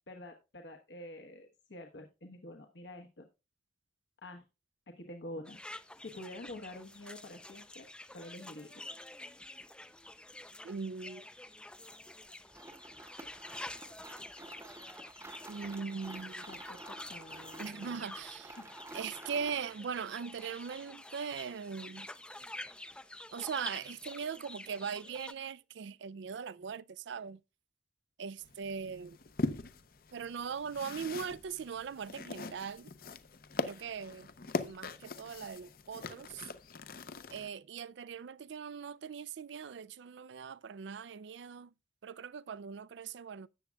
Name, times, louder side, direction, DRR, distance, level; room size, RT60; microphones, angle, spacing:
voice 1, 0.1-3.3 4.2-4.4 5.0-5.6 6.0-7.9 8.1-8.8 16.5-18.1 18.6-18.7, left 1 dB, 75° left, 1.1 m, -48 dB
sound 1, 5.4-25.3, left 1 dB, 5° left, 0.4 m, -48 dB
voice 2, 10.6-11.2 15.5-16.4 17.6-18.6 18.9-22.1 23.3-27.4 28.2-29.2 30.1-32.9 33.7-34.3 34.6-36.5 37.3-41.7 42.0-43.5, right 6 dB, 75° right, 0.4 m, -40 dB
sound 2, 12.5-19.8, right 2 dB, 15° right, 0.9 m, -51 dB
sound 3, 28.4-37.5, left 3 dB, 50° left, 0.6 m, -41 dB
13.5 x 8.4 x 2.3 m
head